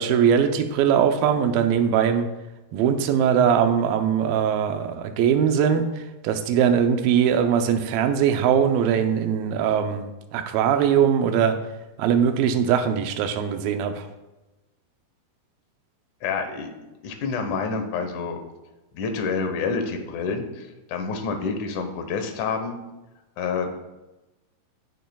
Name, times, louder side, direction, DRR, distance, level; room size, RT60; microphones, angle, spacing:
voice 1, 0.0-2.3 2.7-11.6 12.0-14.1, right 8 dB, 80° right, 6 dB, 2.5 m, -21 dB
voice 2, 16.2-16.7 17.0-18.4 18.9-22.8 23.4-23.7, left 5 dB, 65° left, 6 dB, 2.2 m, -28 dB
18.5 x 6.3 x 2.3 m, 1.0 s
omnidirectional pair, 4.3 m